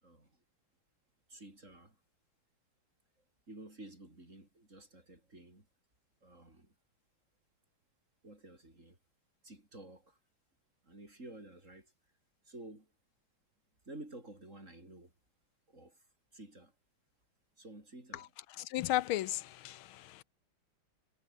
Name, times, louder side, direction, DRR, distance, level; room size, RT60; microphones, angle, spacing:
voice 1, 1.3-2.0 3.5-5.7 6.2-6.7 8.2-9.0 9.4-10.2 10.8-11.9 12.5-12.9 13.9-15.1 15.7-16.0 16.3-16.7 17.6-18.3, right 2 dB, 35° right, 7.0 m, -52 dB
voice 2, 18.1-20.2, left 14 dB, 85° left, 1.6 m, -35 dB
omnidirectional pair, 2.2 m